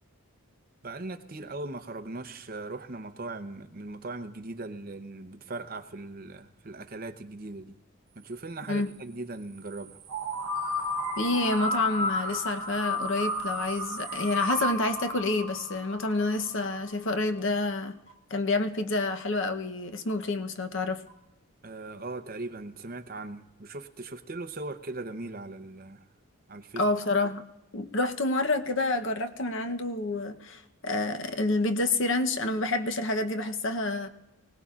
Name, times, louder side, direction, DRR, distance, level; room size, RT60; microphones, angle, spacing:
voice 1, 0.8-7.8 8.2-10.0 21.6-26.1 26.5-26.9, right 2 dB, 40° right, 9 dB, 0.8 m, -39 dB
sound 1, 10.1-16.9, left 1 dB, 70° right, 1.1 m, -32 dB
voice 2, 11.2-18.0 18.3-21.0 26.8-27.4 27.7-34.1, left 2 dB, 55° left, 7 dB, 0.9 m, -28 dB
sound 2, 13.1-13.2 14.1-14.2 15.1-15.2 16.1-16.2 17.1-17.2 18.1-18.2 19.1-19.2 20.1-20.2 21.1-21.2 22.1-22.2, right 3 dB, 40° left, 2.6 m, -54 dB
24.5 x 18.0 x 2.5 m, 0.96 s
head